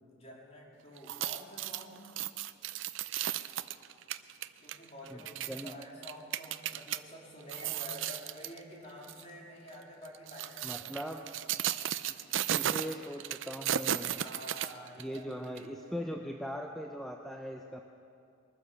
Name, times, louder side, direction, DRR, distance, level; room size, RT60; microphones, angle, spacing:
voice 1, 0.0-2.1 4.6-11.1 11.4-11.5 14.2-15.4 15.8-16.0, equal, 30° left, -4 dB, 3.1 m, -49 dB
sound 1, 1.0-7.0 7.4-8.6 9.0-9.2 10.0-15.2 15.6-15.7, right 11 dB, 70° right, 0.4 m, -35 dB
voice 2, 5.5-5.8 10.6-11.3 12.5-14.2 15.0-17.8, equal, ahead, 2 dB, 0.5 m, -40 dB
22.0 x 9.7 x 6.8 m, 2.5 s
head